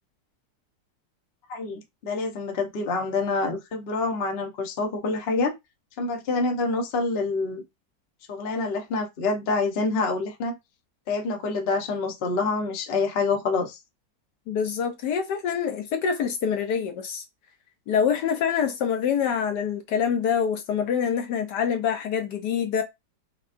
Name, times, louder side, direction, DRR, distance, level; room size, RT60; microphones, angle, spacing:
voice 1, 1.5-5.5 6.0-7.6 8.3-10.6 11.1-13.8, left 3 dB, 50° left, 0.8 m, -27 dB
voice 2, 14.5-17.2 17.9-22.8, left 7 dB, 70° left, 1.2 m, -25 dB
4.8 x 2.3 x 2.5 m
omnidirectional pair, 1.9 m